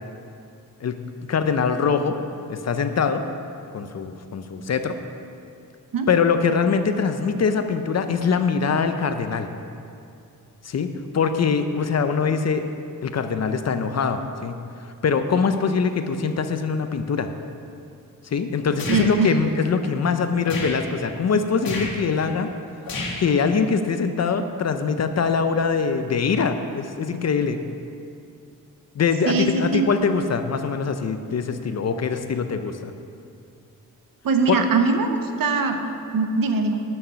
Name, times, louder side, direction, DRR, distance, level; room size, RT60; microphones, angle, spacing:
voice 1, 0.8-2.2 2.5-3.2 3.7-5.0 6.1-9.5 10.6-12.6 13.0-14.6 15.0-17.3 18.2-22.5 23.2-27.6 28.9-32.9 34.5-34.6, left 5 dB, 45° left, 8 dB, 0.5 m, -23 dB
sound 1, 18.8-19.1 20.4-20.8 21.6-21.9 22.8-23.2, left 2 dB, 70° left, 1.6 m, -30 dB
voice 2, 18.9-19.3 29.2-29.9 34.2-36.8, right 4 dB, 65° right, 6 dB, 0.9 m, -22 dB
11.0 x 6.6 x 5.6 m, 2.5 s
wide cardioid pair, 175°, 36 cm